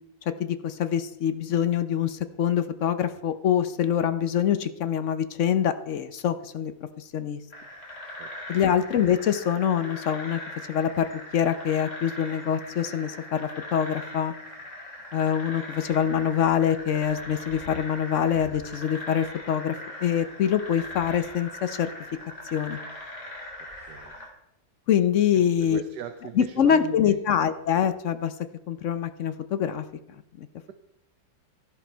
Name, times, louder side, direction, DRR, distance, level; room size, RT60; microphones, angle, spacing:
voice 1, 0.4-6.7 7.0-7.4 8.5-10.4 10.7-14.3 15.1-19.8 20.0-21.9 22.5-22.8 24.9-25.8 26.4-28.3 28.7-29.8 30.4-30.5, left 9 dB, 60° left, 11 dB, 0.8 m, -25 dB
sound 1, 7.5-24.3, left 1 dB, 40° left, 3.0 m, -40 dB
voice 2, 8.2-8.6 23.9-24.1 25.3-27.2, right 9 dB, 70° right, 8 dB, 1.4 m, -39 dB
13.5 x 11.0 x 4.6 m, 0.81 s
omnidirectional pair, 1.9 m